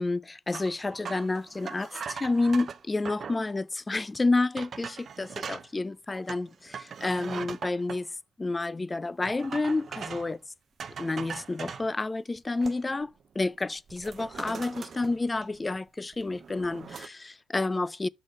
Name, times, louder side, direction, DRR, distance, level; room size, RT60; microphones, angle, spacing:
voice 1, 0.0-8.1 8.4-10.4 11.0-18.1, left 3 dB, 20° left, 0.3 m, -30 dB
sound 1, 0.5-3.4 4.0-4.1 4.6-5.7 6.3-8.0 9.2-10.4 10.8-11.9 12.4-13.0 13.4-13.6 13.9-15.8 16.1-17.1, right 6 dB, 50° right, 0.6 m, -40 dB
6.3 x 3.9 x 6.1 m
cardioid pair, 90°, 0 cm